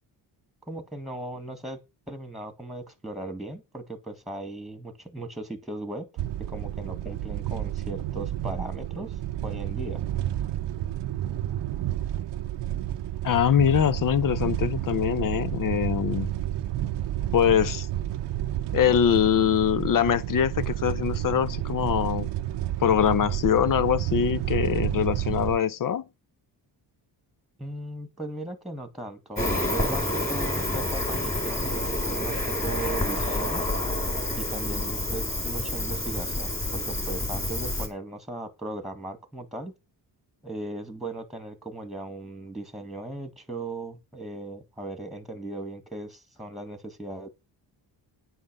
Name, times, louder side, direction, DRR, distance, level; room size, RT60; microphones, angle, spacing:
voice 1, 0.7-1.8 2.1-6.1 6.5-9.2 9.4-10.0 27.6-29.4 29.7-33.7 34.3-39.7 40.4-47.3, right 2 dB, ahead, 1.8 m, -37 dB
sound 1, 6.2-25.6, right 13 dB, 75° right, 0.8 m, -30 dB
voice 2, 13.2-16.3 17.3-17.9 18.7-22.3 22.8-26.0, left 9 dB, 50° left, 0.7 m, -23 dB
Cricket, 29.3-37.9, left 1 dB, 15° left, 3.6 m, -28 dB
9.8 x 5.5 x 6.7 m
cardioid pair, 130°, 43 cm